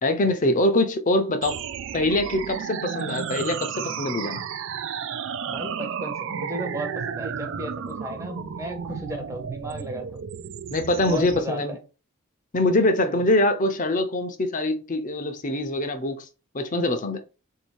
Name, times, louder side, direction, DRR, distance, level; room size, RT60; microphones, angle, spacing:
voice 1, 0.0-1.6 1.9-4.4 8.9-9.0 10.7-11.8 12.5-16.2 16.5-17.2, left 1 dB, 35° left, 0.7 m, -24 dB
sound 1, 1.4-11.4, right 7 dB, 60° right, 0.3 m, -33 dB
voice 2, 5.5-10.2 11.0-11.8 13.1-13.2, right 1 dB, 15° right, 0.8 m, -35 dB
3.8 x 2.7 x 4.5 m
head